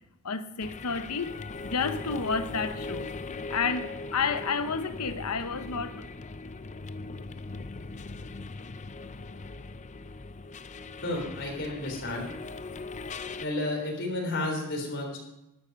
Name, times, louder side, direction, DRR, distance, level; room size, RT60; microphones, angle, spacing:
voice 1, 0.2-1.3 1.6-3.1 3.5-6.1, left 5 dB, 85° left, 0.9 m, -30 dB
sound 1, 0.6-13.5, left 3 dB, 35° left, 0.5 m, -40 dB
voice 2, 11.0-12.3 13.4-15.2, left 2 dB, 55° left, 3.6 m, -32 dB
13.0 x 11.5 x 5.3 m
head